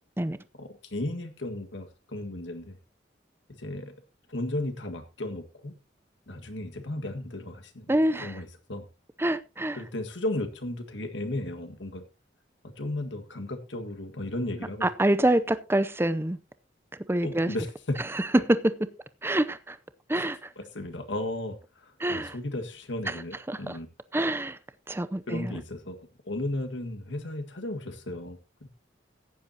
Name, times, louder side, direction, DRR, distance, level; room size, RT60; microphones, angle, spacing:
voice 1, 0.6-2.8 3.6-4.0 4.3-5.8 6.3-7.9 8.2-8.9 9.7-12.0 12.6-14.9 17.2-17.7 20.2-20.3 20.6-23.9 25.3-26.0 26.3-28.7, left 1 dB, 85° left, 1.8 m, -35 dB
voice 2, 7.9-8.4 9.2-9.8 14.8-16.4 17.1-17.5 18.1-18.7 19.2-19.8 20.1-20.5 22.0-22.3 23.5-23.8 24.1-24.6 24.9-25.5, right 1 dB, 15° right, 0.6 m, -26 dB
15.0 x 10.0 x 2.8 m
head